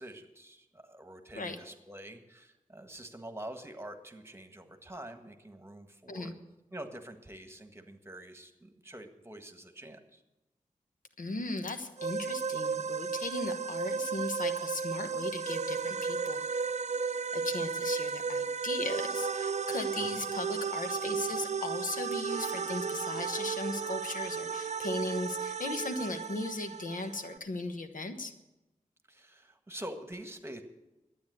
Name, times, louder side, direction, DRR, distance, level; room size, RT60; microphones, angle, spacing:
voice 1, 0.0-6.4 6.7-10.2 20.0-20.2 29.1-30.6, right 1 dB, 20° right, 7 dB, 1.5 m, -46 dB
voice 2, 11.2-16.6 17.3-28.3, left 2 dB, 90° left, 7 dB, 1.2 m, -37 dB
sound 1, 12.0-27.4, right 5 dB, 55° right, 0.5 m, -34 dB
12.0 x 9.3 x 8.0 m, 0.97 s
wide cardioid pair, 70°, 14 cm